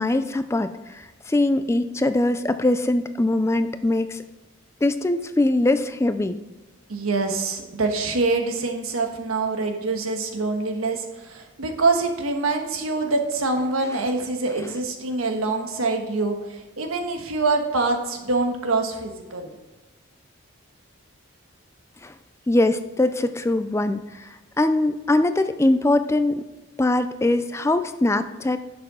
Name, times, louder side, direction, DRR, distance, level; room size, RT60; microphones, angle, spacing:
voice 1, 0.0-4.2 4.8-6.4 22.0-22.1 22.5-26.4 26.8-28.6, left 2 dB, 15° left, 11 dB, 0.3 m, -22 dB
voice 2, 6.9-19.5, right 3 dB, 90° right, 4 dB, 1.3 m, -25 dB
11.0 x 6.8 x 3.7 m, 1.1 s
head